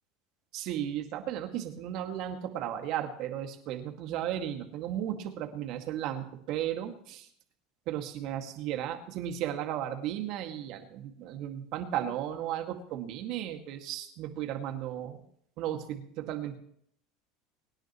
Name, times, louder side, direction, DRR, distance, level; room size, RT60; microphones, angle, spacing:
voice 1, 0.5-7.3 7.9-15.2 15.6-16.6, right 11 dB, 60° right, 5 dB, 2.1 m, -35 dB
24.0 x 10.5 x 3.1 m, 0.65 s
supercardioid pair, 105°, 0 cm